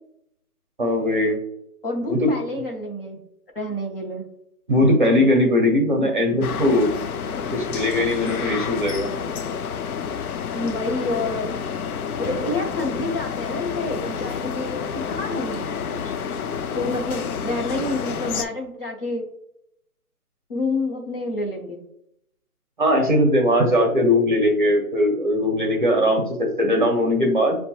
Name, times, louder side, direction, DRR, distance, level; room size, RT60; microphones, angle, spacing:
voice 1, 0.8-1.4 2.1-2.3 4.7-6.9 7.5-9.1 22.8-27.6, left 1 dB, 35° right, 0 dB, 0.7 m, -19 dB
voice 2, 1.8-3.2 3.5-4.3 10.5-11.5 12.2-16.2 16.7-19.2 20.5-21.8, left 2 dB, 40° left, -1 dB, 0.8 m, -28 dB
sound 1, 6.4-18.4, left 7 dB, 75° left, 0.5 m, -29 dB
6.6 x 2.2 x 2.8 m, 0.75 s
hypercardioid pair, 170°, 44 cm